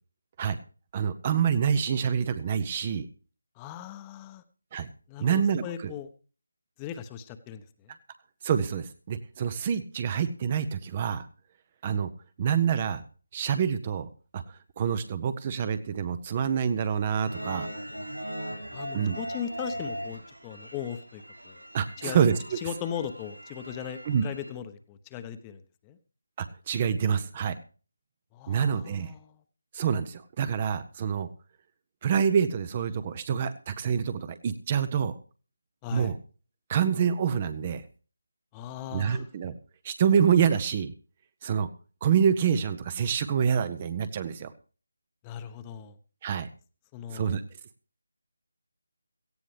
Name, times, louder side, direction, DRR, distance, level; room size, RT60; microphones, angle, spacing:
voice 1, 0.9-3.1 4.7-4.9 5.2-5.9 8.4-11.3 11.8-12.1 12.4-13.0 13.3-17.7 18.9-19.2 21.7-22.6 24.1-24.2 26.4-27.6 28.5-29.1 29.7-31.3 32.0-35.2 35.9-36.2 36.7-37.8 38.9-39.6 39.8-40.9 41.4-41.7 42.0-44.5 46.2-46.5 47.1-47.4, right 7 dB, 25° right, 13 dB, 0.7 m, -27 dB
voice 2, 3.6-4.4 5.1-6.1 6.8-8.0 18.7-21.6 22.0-22.2 22.6-26.0 28.3-29.4 35.8-36.1 38.5-39.2 45.2-46.0 46.9-47.4, left 9 dB, 15° left, 11 dB, 0.9 m, -38 dB
sound 1, 17.1-24.5, right 1 dB, 90° right, 4.4 m, -39 dB
17.5 x 15.0 x 3.3 m, 0.38 s
figure-of-eight pair, 155°, 0 cm